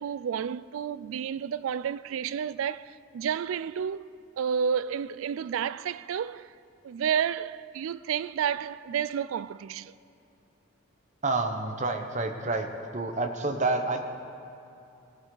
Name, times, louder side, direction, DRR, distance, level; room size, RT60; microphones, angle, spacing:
voice 1, 0.0-4.1 4.4-6.5 6.8-9.9, right 8 dB, 90° right, 0.3 m, -31 dB
voice 2, 11.2-12.7 12.9-14.0, right 3 dB, 35° right, 1.0 m, -28 dB
19.5 x 13.0 x 3.9 m
head